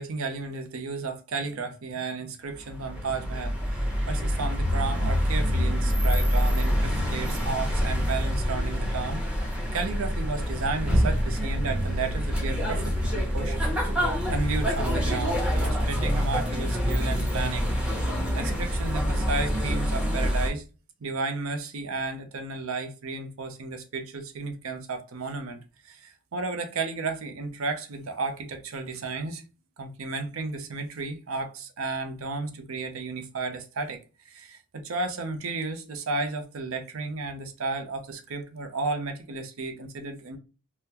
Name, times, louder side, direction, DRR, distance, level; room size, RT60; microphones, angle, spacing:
voice 1, 0.0-9.5 9.7-13.6 13.9-14.0 14.3-17.8 18.3-20.6 21.0-25.6 25.8-29.4 29.8-34.0 34.2-40.4, right 3 dB, 70° right, 0.6 m, -33 dB
sound 1, 2.5-20.5, equal, 5° right, 1.0 m, -26 dB
3.6 x 2.1 x 2.8 m
head